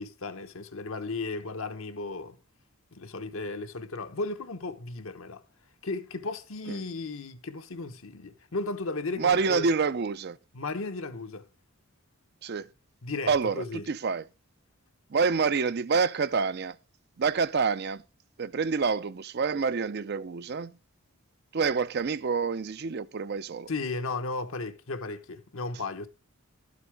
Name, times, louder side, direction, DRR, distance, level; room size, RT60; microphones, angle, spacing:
voice 1, 0.0-2.4 2.9-5.4 5.8-9.7 10.5-11.5 13.0-13.8 23.7-26.1, left 3 dB, 65° left, 1.0 m, -35 dB
voice 2, 9.2-10.4 12.4-12.7 13.3-14.2 15.1-16.8 17.2-18.0 18.4-20.7 21.5-23.7, right 5 dB, 45° right, 0.5 m, -27 dB
12.5 x 8.1 x 3.4 m
head